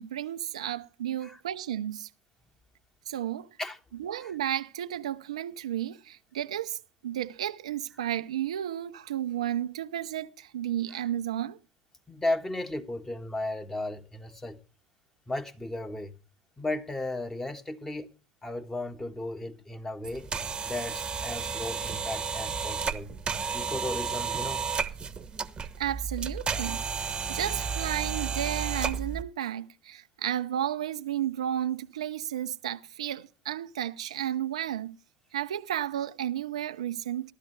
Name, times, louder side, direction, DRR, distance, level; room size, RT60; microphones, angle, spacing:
voice 1, 0.0-2.1 3.1-3.5 4.0-11.6 25.8-26.8 27.3-35.0 35.3-37.3, right 11 dB, 80° right, 0.6 m, -33 dB
voice 2, 12.1-14.6 15.3-16.2 16.6-18.1 18.4-20.3 20.6-23.1 23.5-24.7, left 2 dB, 15° left, 1.6 m, -35 dB
sound 1, 20.0-29.2, right 6 dB, 25° right, 1.1 m, -32 dB
15.0 x 12.0 x 3.3 m
hypercardioid pair, 75°, 3 cm